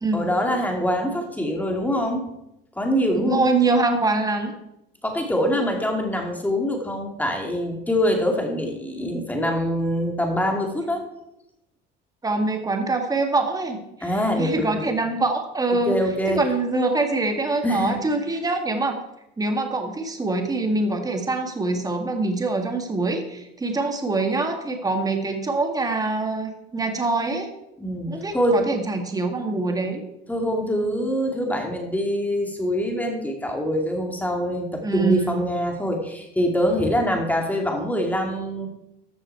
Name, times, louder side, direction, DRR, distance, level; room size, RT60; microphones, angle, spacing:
voice 1, 0.1-2.2 2.8-3.5 5.0-11.0 14.0-14.9 15.7-16.4 17.6-18.0 27.8-28.6 30.3-38.7, equal, 5° left, 2 dB, 2.3 m, -24 dB
voice 2, 3.2-4.5 12.2-14.1 14.4-16.0 16.3-18.9 19.4-27.5 28.1-30.0 34.8-35.4, right 3 dB, 15° right, 5 dB, 1.7 m, -24 dB
14.0 x 6.4 x 4.6 m, 0.86 s
cardioid pair, 115°, 21 cm